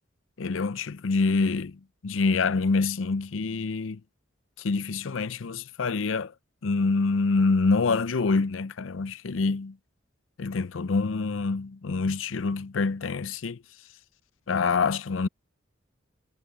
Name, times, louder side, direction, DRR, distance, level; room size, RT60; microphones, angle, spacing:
voice 1, 0.4-4.0 4.6-6.3 6.6-9.8 10.4-13.6 14.5-15.3, left 4 dB, 85° left, 0.6 m, -26 dB
head